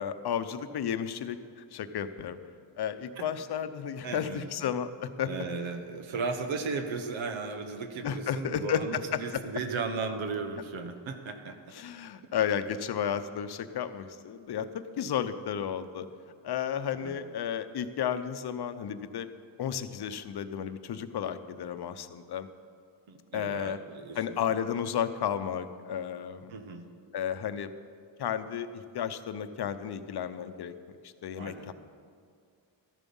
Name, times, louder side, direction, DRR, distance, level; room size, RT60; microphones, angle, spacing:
voice 1, 0.0-2.4 2.8-5.3 8.0-9.4 11.7-16.1 16.4-19.3 19.6-22.5 23.3-23.8 24.2-26.5 27.1-27.7 28.2-30.7 31.0-31.7, left 8 dB, 55° left, 11 dB, 0.8 m, -33 dB
voice 2, 4.0-4.4 5.2-11.6 17.0-17.2 23.1-24.2 26.5-26.8 31.4-31.7, right 4 dB, 80° right, 7 dB, 1.3 m, -35 dB
13.5 x 11.0 x 5.5 m, 2.3 s
cardioid pair, 115°, 46 cm